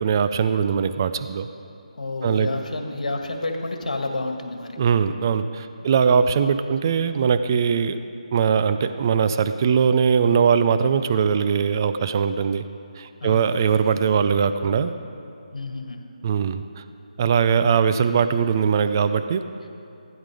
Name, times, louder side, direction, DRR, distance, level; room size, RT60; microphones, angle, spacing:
voice 1, 0.0-1.5 2.2-2.5 4.8-8.0 8.3-12.6 13.0-14.9 16.2-16.8 17.2-19.4, right 6 dB, 30° right, 10 dB, 0.5 m, -21 dB
voice 2, 1.9-4.8 5.8-5.9 13.2-13.5 15.5-16.0, left 2 dB, 80° left, 4 dB, 1.9 m, -30 dB
16.5 x 10.0 x 5.0 m, 2.7 s
figure-of-eight pair, 165°, 4 cm